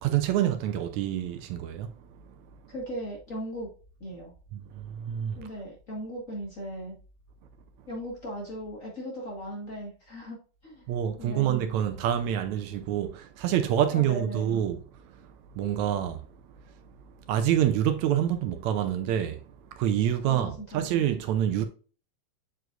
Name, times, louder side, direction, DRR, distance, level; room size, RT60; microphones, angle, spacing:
voice 1, 0.0-1.9 4.5-5.4 10.9-14.8 15.6-16.3 17.3-19.4 19.7-21.7, right 10 dB, 75° right, 2.0 m, -27 dB
voice 2, 2.7-3.7 4.0-4.3 5.3-6.9 7.9-10.4 10.6-10.9 11.2-11.6 13.9-14.4 20.2-20.9, equal, 30° left, 1.8 m, -38 dB
7.7 x 4.9 x 2.5 m
omnidirectional pair, 3.4 m